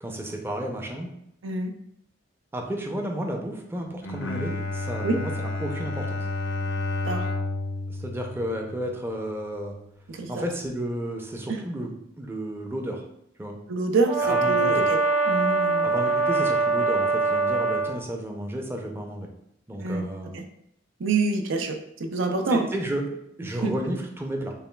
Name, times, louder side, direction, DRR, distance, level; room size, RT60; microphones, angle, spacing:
voice 1, 0.0-1.1 2.5-5.3 5.6-6.2 7.9-9.8 10.3-13.0 13.4-13.6 14.2-14.9 15.8-19.3 19.7-20.4 22.5-24.5, right 1 dB, 10° right, 2 dB, 0.5 m, -32 dB
Bowed string instrument, 3.9-9.3, left 2 dB, 70° left, 0.6 m, -31 dB
voice 2, 10.1-10.4 11.5-11.6 13.7-15.0 15.3-15.9 19.8-20.1 20.3-20.4 21.0-22.6 23.6-23.7, right 3 dB, 85° right, 5 dB, 0.5 m, -26 dB
Brass instrument, 14.0-17.9, right 3 dB, 40° right, 0.7 m, -23 dB
6.8 x 2.3 x 2.2 m, 0.77 s
head